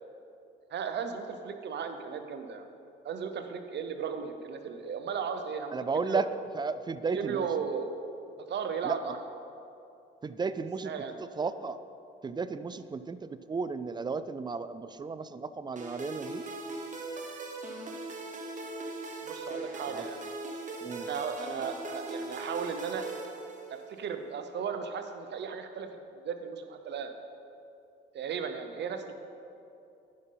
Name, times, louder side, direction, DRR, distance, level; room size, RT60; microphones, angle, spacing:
voice 1, 0.7-2.7 3.0-6.2 7.1-7.9 8.5-9.2 10.8-11.2 19.2-20.3 21.0-23.1 23.7-25.9 26.2-27.1 28.1-29.1, right 6 dB, 60° right, 7 dB, 0.9 m, -35 dB
voice 2, 5.7-6.3 6.5-7.5 8.8-9.2 10.2-10.9 11.2-11.8 12.2-16.5 19.9-20.1 20.8-21.1, right 4 dB, 20° right, 13 dB, 0.4 m, -34 dB
sound 1, 15.8-24.0, right 2 dB, 40° right, 1.3 m, -40 dB
10.0 x 5.7 x 5.5 m, 2.6 s
cardioid pair, 90°, 20 cm